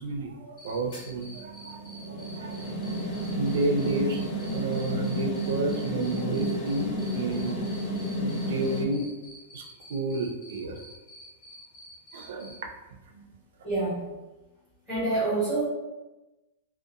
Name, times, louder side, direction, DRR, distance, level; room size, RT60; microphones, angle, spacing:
voice 1, 0.0-1.8 2.1-2.5 2.8-9.1 9.5-9.6 9.9-10.8 12.1-12.5 13.1-13.3, right 2 dB, 70° right, 3 dB, 0.4 m, -31 dB
Cricket, 0.6-12.5, equal, 40° left, 1.1 m, -48 dB
sound 1, 0.9-8.8, equal, 60° left, 1.0 m, -32 dB
voice 2, 13.6-14.1 14.9-15.7, right 2 dB, 10° left, -14 dB, 1.3 m, -27 dB
2.8 x 2.1 x 2.4 m, 1.1 s
supercardioid pair, 180°, 0 cm